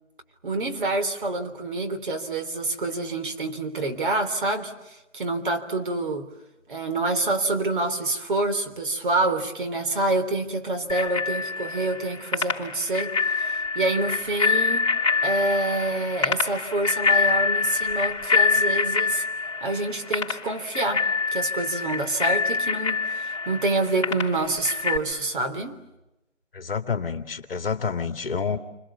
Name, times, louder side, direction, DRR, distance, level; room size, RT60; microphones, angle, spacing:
voice 1, 0.4-6.3 6.7-14.9 15.2-19.2 19.6-21.0 21.3-25.8, right 2 dB, 40° right, 3.4 m, -27 dB
Bicycle bell, 10.9-25.0, left 5 dB, 25° left, 4.4 m, -26 dB
voice 2, 26.5-28.6, left 5 dB, 50° left, 2.2 m, -28 dB
29.5 x 26.5 x 7.2 m
figure-of-eight pair, 165°, 38 cm